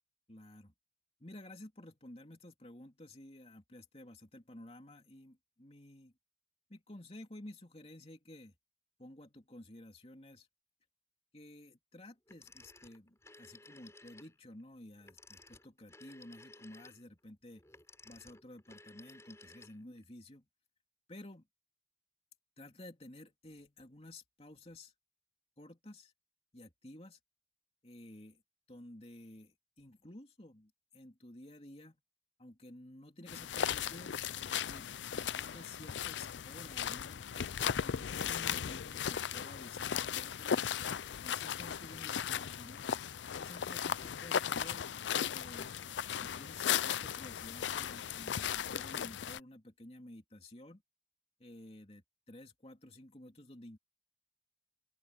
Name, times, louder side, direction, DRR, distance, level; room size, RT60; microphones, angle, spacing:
voice 1, 0.3-0.7 1.2-6.1 6.7-8.5 9.0-10.5 11.3-17.6 18.0-20.5 21.1-21.5 22.6-24.9 25.6-26.1 26.5-27.2 27.8-28.4 28.7-32.0 32.4-34.1 34.7-37.3 37.6-43.1 43.3-44.8 45.2-45.7 46.1-50.8 51.4-53.8, left 1 dB, 35° left, 2.9 m, -53 dB
Telephone, 12.3-14.3 15.0-20.0, left 2 dB, 15° left, 6.1 m, -57 dB
sound 1, 33.3-49.4, left 8 dB, 80° left, 0.5 m, -36 dB
open air
head